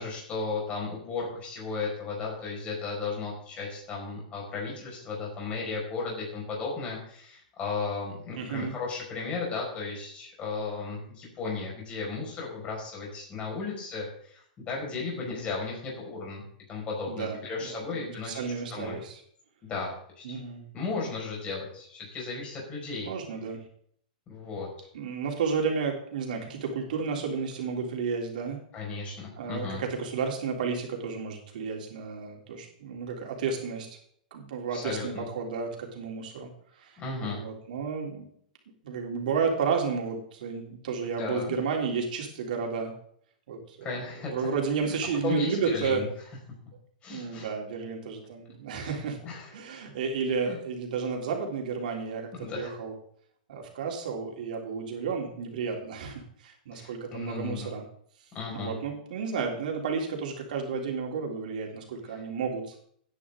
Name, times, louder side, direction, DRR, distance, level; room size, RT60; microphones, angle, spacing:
voice 1, 0.0-16.4 16.7-19.0 19.6-20.4 20.7-23.1 24.3-24.9 28.7-29.8 34.7-35.3 37.0-37.4 41.0-41.5 43.8-44.5 44.8-45.0 45.2-46.1 47.0-47.5 48.7-49.5 50.5-50.6 52.4-52.7 56.7-57.7 58.3-58.7, left 4 dB, 25° left, -2 dB, 5.3 m, -35 dB
voice 2, 8.4-8.7 17.1-19.2 20.2-20.6 23.0-23.6 24.9-28.6 29.4-33.9 34.3-36.5 36.8-38.3 38.8-42.9 43.5-46.0 47.1-49.2 49.5-52.9 53.5-57.8 58.5-62.7, right 5 dB, 70° right, 1 dB, 3.2 m, -32 dB
16.0 x 9.8 x 3.8 m, 0.64 s
hypercardioid pair, 135°, 5 cm